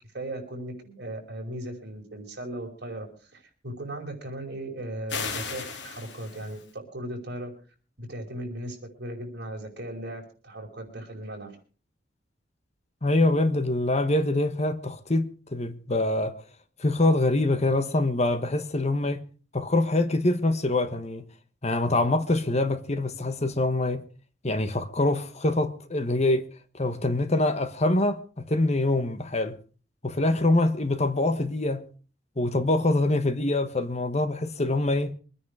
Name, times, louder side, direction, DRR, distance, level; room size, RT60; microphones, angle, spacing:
voice 1, 0.1-7.5 8.0-11.6, right 1 dB, 60° right, 5.2 m, -37 dB
sound 1, 5.1-6.7, left 5 dB, 70° left, 3.1 m, -35 dB
voice 2, 13.0-16.4 16.8-19.2 19.5-21.2 21.6-24.0 24.4-26.4 26.7-29.6 30.0-31.9 32.4-35.1, left 2 dB, 35° left, 1.3 m, -24 dB
24.0 x 9.8 x 4.9 m
head